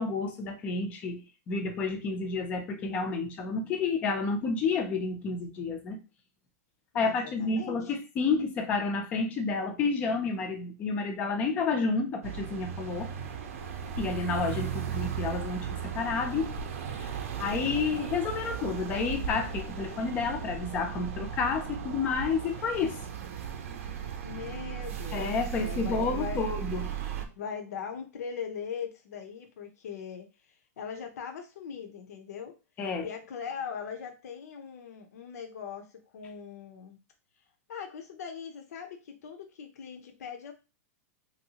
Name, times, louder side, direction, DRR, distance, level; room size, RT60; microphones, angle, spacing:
voice 1, 0.0-6.0 6.9-13.1 14.0-16.5 16.9-23.0 25.1-26.9 32.8-33.1, left 4 dB, 15° left, 5 dB, 0.4 m, -30 dB
voice 2, 6.9-8.0 14.7-14.8 24.2-25.3 25.6-26.5 27.4-32.6 33.0-37.0 37.7-40.5, left 7 dB, 70° left, 4 dB, 0.6 m, -40 dB
sound 1, 12.2-27.3, right 8 dB, 55° right, 0.6 m, -36 dB
3.1 x 2.7 x 2.8 m, 0.29 s
supercardioid pair, 175°, 9 cm